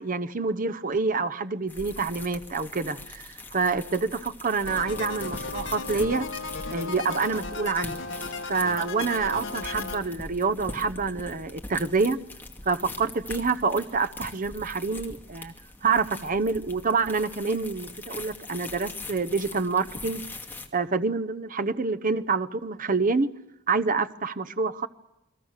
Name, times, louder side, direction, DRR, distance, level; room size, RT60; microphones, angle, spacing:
voice 1, 0.0-6.3 6.7-8.0 8.5-12.2 12.6-15.5 15.8-20.2 20.7-23.3 23.7-24.9, right 4 dB, 40° right, 0.9 m, -27 dB
sound 1, 1.7-20.7, left 2 dB, 10° left, 2.2 m, -42 dB
sound 2, 4.7-10.0, left 4 dB, 65° left, 1.6 m, -35 dB
29.0 x 21.5 x 6.6 m
head